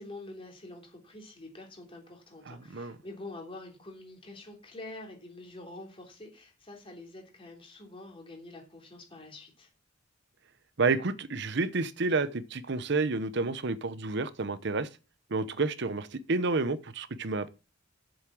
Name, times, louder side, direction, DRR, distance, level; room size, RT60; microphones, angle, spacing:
voice 1, 0.0-9.7, left 2 dB, 30° left, 3.3 m, -46 dB
voice 2, 2.5-3.0 10.8-14.9 15.3-17.5, right 3 dB, 60° right, 0.8 m, -30 dB
7.9 x 7.3 x 6.2 m
head